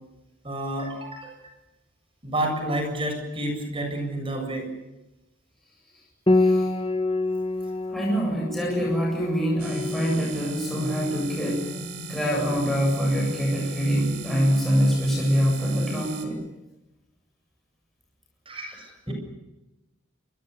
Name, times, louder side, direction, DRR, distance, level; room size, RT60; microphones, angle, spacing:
voice 1, 0.4-1.4 2.2-4.7 18.5-19.1, right 1 dB, 25° right, 4 dB, 7.4 m, -30 dB
Piano, 6.3-15.6, left 2 dB, 25° left, 1.8 m, -29 dB
voice 2, 7.9-11.7 12.1-16.4 19.1-19.2, equal, ahead, -3 dB, 7.9 m, -24 dB
sound 1, 9.6-16.2, right 2 dB, 75° right, 4.4 m, -36 dB
28.0 x 25.0 x 6.9 m, 0.97 s
head